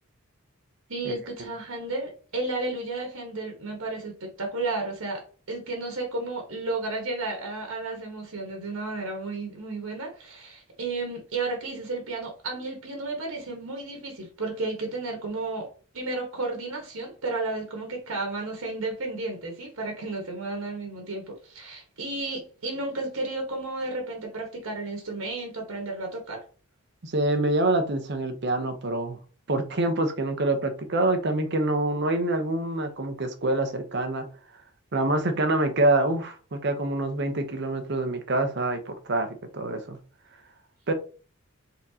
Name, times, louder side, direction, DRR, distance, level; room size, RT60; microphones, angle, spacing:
voice 1, 0.9-26.4, right 2 dB, 85° right, 1.3 m, -33 dB
voice 2, 27.0-29.2 29.5-34.3 34.9-40.0 40.9-41.0, right 2 dB, 50° right, 0.7 m, -26 dB
4.3 x 3.7 x 2.8 m
head